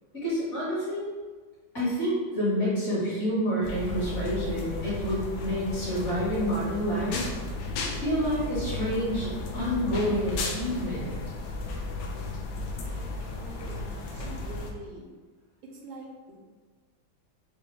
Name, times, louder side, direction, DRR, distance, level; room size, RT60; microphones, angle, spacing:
voice 1, 0.2-1.1 1.7-7.2 8.0-11.1, equal, 40° left, -9 dB, 1.7 m, -28 dB
sound 1, 3.6-14.7, left 2 dB, 70° left, 1.2 m, -34 dB
voice 2, 13.2-15.1 15.8-16.4, right 1 dB, 75° right, -1 dB, 1.4 m, -44 dB
4.9 x 2.6 x 3.1 m, 1.4 s
omnidirectional pair, 2.2 m